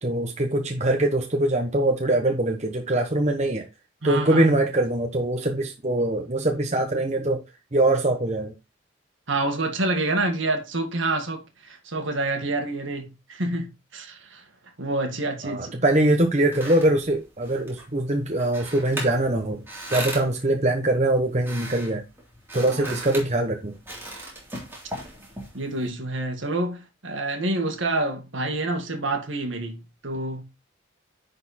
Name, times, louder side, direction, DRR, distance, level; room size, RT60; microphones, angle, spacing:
voice 1, 0.0-3.6 4.0-7.4 7.7-8.5 15.4-19.6 19.9-22.0 22.5-23.7, right 1 dB, 35° right, 1.1 m, -23 dB
voice 2, 4.0-4.5 9.3-14.4 14.8-15.7 22.6-23.0 25.5-30.4, right 2 dB, 70° right, 1.9 m, -28 dB
sound 1, 16.2-25.9, right 1 dB, 10° right, 3.2 m, -38 dB
10.5 x 4.4 x 4.2 m
head